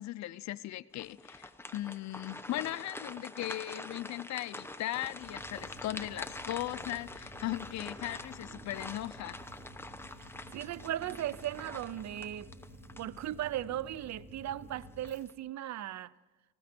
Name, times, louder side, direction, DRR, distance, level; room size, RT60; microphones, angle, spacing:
voice 1, 0.0-9.4, left 15 dB, 65° left, 0.5 m, -38 dB
sound 1, 1.0-13.6 14.1-14.2 14.8-15.3, left 2 dB, 10° left, 0.9 m, -46 dB
sound 2, 5.2-15.2, right 1 dB, 25° right, 3.4 m, -51 dB
voice 2, 10.2-12.5 13.0-16.1, right 12 dB, 65° right, 0.6 m, -37 dB
19.0 x 15.5 x 4.4 m
cardioid pair, 90°, 30 cm